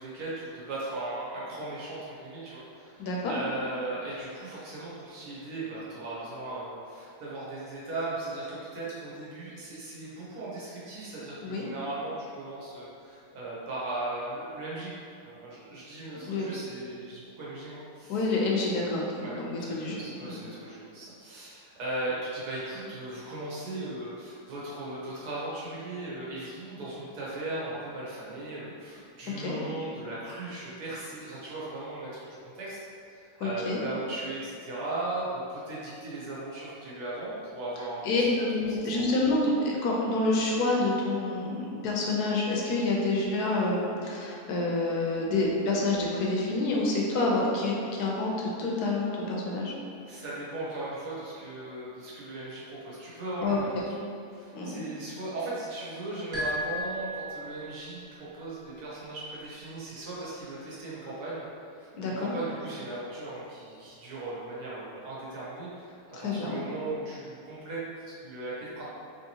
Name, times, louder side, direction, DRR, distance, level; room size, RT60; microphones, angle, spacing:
voice 1, 0.0-18.2 18.7-18.9 19.2-19.4 19.7-32.8 33.1-38.3 38.6-39.0 50.0-53.9 54.3-68.8, right 2 dB, 75° right, -7 dB, 1.5 m, -38 dB
voice 2, 3.0-3.3 11.4-11.7 16.3-16.5 18.1-20.4 29.4-29.6 33.4-33.8 38.0-49.7 53.4-53.6 54.5-54.8 61.9-62.3 66.1-66.6, left 2 dB, 80° left, -2 dB, 1.1 m, -28 dB
sound 1, 56.3-57.9, equal, 15° right, 0.8 m, -34 dB
3.6 x 2.9 x 2.8 m, 2.5 s
omnidirectional pair, 1.7 m